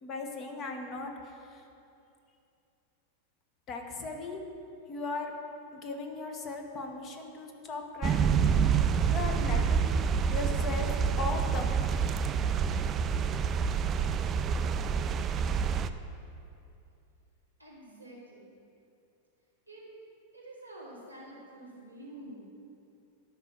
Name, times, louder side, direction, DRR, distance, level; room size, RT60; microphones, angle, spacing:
voice 1, 0.0-1.1 1.5-1.6 3.7-4.4 4.9-5.3 5.7-8.3 9.0-10.9 11.2-11.8, left 3 dB, 30° left, 4 dB, 1.3 m, -37 dB
sound 1, 8.0-15.9, right 6 dB, 25° right, 0.4 m, -27 dB
voice 2, 17.6-18.5 19.7-19.8 20.3-22.5, right 1 dB, 90° left, -5 dB, 2.3 m, -48 dB
12.0 x 5.5 x 6.4 m, 2.7 s
figure-of-eight pair, 90°, 0 cm